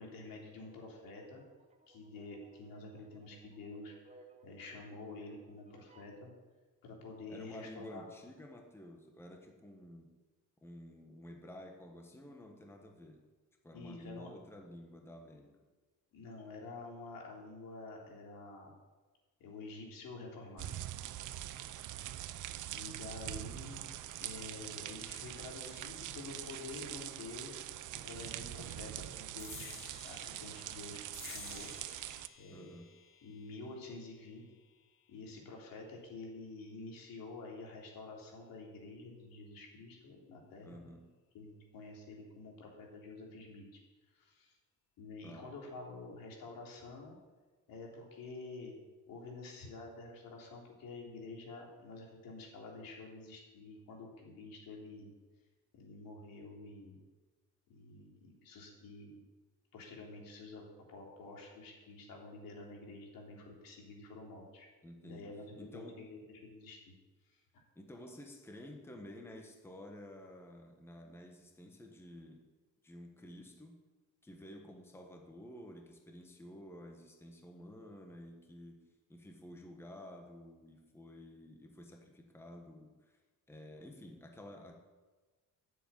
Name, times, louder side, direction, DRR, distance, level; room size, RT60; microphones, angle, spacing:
voice 1, 0.0-1.4 1.9-6.3 6.8-8.1 13.7-14.3 16.1-18.7 19.4-20.7 22.7-23.8 24.2-27.7 27.9-29.7 30.0-31.7 32.4-32.8 33.2-34.4 35.1-40.9 41.3-43.8 44.1-44.6 45.0-47.1 47.7-48.7 49.1-55.1 55.7-57.0 57.7-59.2 59.7-60.6 60.9-64.7 65.0-66.9 67.3-67.4, left 3 dB, 85° left, -1 dB, 3.5 m, -49 dB
sound 1, 0.5-6.2, right 3 dB, 20° right, 0.7 m, -63 dB
voice 2, 7.3-10.1 10.6-13.2 13.6-15.6 21.6-21.7 32.5-32.9 40.6-41.1 45.2-45.5 64.8-66.1 67.7-72.5 72.8-73.8 74.2-83.2 83.5-84.8, left 1 dB, 5° left, 2 dB, 1.2 m, -52 dB
sound 2, 20.6-32.3, right 13 dB, 65° right, 0.6 m, -44 dB
sound 3, 29.4-36.2, left 5 dB, 40° left, 1.2 m, -54 dB
11.0 x 7.6 x 8.8 m, 1.3 s
cardioid pair, 175°, 33 cm